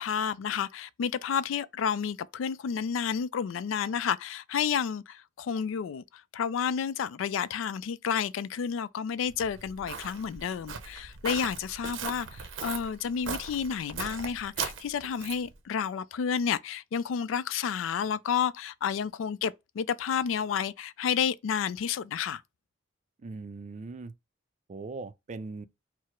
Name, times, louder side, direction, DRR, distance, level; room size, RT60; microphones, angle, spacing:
voice 1, 0.0-6.0 6.3-22.4, left 7 dB, 85° left, 0.3 m, -30 dB
Walk footsteps, 9.3-15.6, right 6 dB, 80° right, 0.6 m, -39 dB
voice 2, 23.2-24.1 24.7-25.7, right 3 dB, 40° right, 0.3 m, -40 dB
4.6 x 2.0 x 4.4 m
head